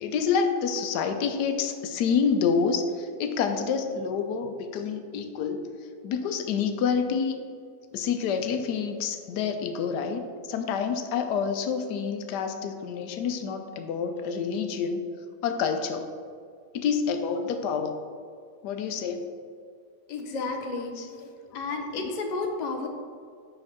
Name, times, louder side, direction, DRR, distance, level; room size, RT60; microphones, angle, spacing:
voice 1, 0.0-5.6 6.0-7.3 7.9-15.0 15.4-16.1 16.7-18.0 18.6-19.3 21.0-21.2, left 6 dB, 90° left, 7 dB, 1.2 m, -28 dB
voice 2, 20.1-20.9 21.5-22.9, left 3 dB, 45° left, 3 dB, 0.5 m, -31 dB
7.9 x 5.9 x 3.5 m, 2.1 s
omnidirectional pair, 1.7 m